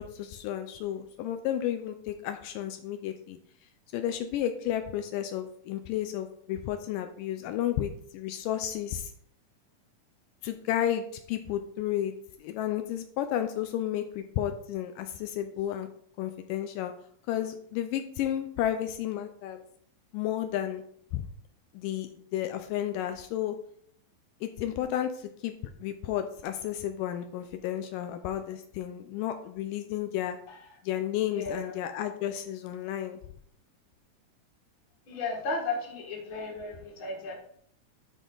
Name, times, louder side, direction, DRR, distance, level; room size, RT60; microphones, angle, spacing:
voice 1, 0.0-3.4 3.9-9.1 10.4-12.1 12.4-15.9 16.2-16.9 17.3-19.6 20.1-20.8 21.1-21.3 21.7-23.6 24.4-25.5 25.8-30.4 30.8-33.2, left 11 dB, 85° left, 7 dB, 2.2 m, -32 dB
voice 2, 31.3-31.7 35.1-37.4, left 3 dB, 45° left, 1 dB, 2.0 m, -34 dB
12.0 x 4.2 x 3.9 m, 0.65 s
omnidirectional pair, 3.9 m